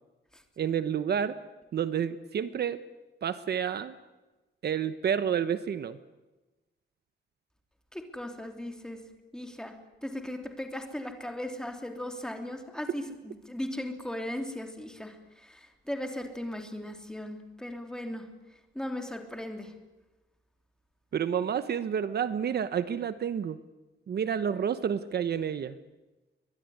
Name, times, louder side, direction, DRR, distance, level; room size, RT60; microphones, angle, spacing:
voice 1, 0.6-1.3 1.7-2.8 3.2-3.9 4.6-6.0 21.1-23.6 24.1-25.8, right 8 dB, 55° right, 12 dB, 1.1 m, -29 dB
voice 2, 7.9-9.0 9.3-18.3 18.7-19.7, left 1 dB, 5° left, 4 dB, 3.0 m, -37 dB
23.5 x 20.0 x 9.5 m, 1.1 s
wide cardioid pair, 160°, 20 cm